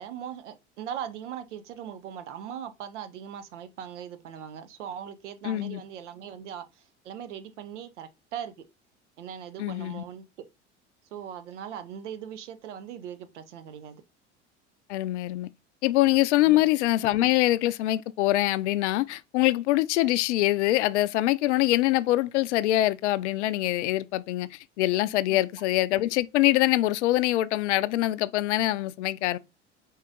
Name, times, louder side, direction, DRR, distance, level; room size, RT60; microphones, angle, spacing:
voice 1, 0.0-6.6 7.0-8.5 9.2-10.2 11.1-14.0 16.4-16.6 25.3-25.4, right 9 dB, 75° right, 0.8 m, -39 dB
voice 2, 5.4-5.8 9.6-10.0 14.9-15.5 15.8-29.4, left 16 dB, 70° left, 0.5 m, -24 dB
4.7 x 2.8 x 3.6 m
hypercardioid pair, 75°, 36 cm